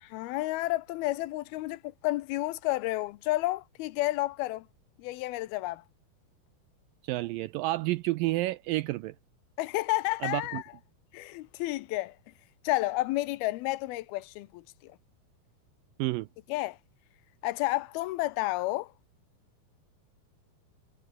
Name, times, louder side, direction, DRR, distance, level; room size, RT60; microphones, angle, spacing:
voice 1, 0.0-4.7 5.0-5.8 9.6-10.6 11.1-12.2 12.6-14.9 16.5-16.8 17.4-18.9, left 18 dB, 80° left, 2.6 m, -31 dB
voice 2, 7.0-9.1 10.2-10.6 16.0-16.3, right 18 dB, 85° right, 2.0 m, -30 dB
omnidirectional pair, 4.5 m